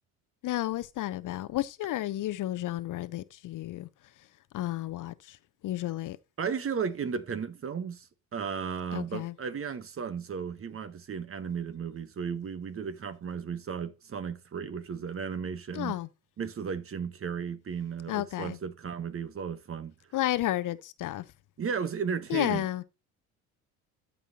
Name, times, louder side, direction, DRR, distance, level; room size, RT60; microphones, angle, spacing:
voice 1, 0.4-3.9 4.5-5.4 5.6-6.2 8.9-9.3 15.7-16.1 18.1-18.6 20.1-21.2 22.3-22.8, left 14 dB, 50° left, 0.7 m, -32 dB
voice 2, 6.4-16.0 16.4-19.9 21.6-22.8, right 6 dB, 35° right, 1.1 m, -35 dB
12.5 x 5.6 x 2.8 m
hypercardioid pair, 65°, 41 cm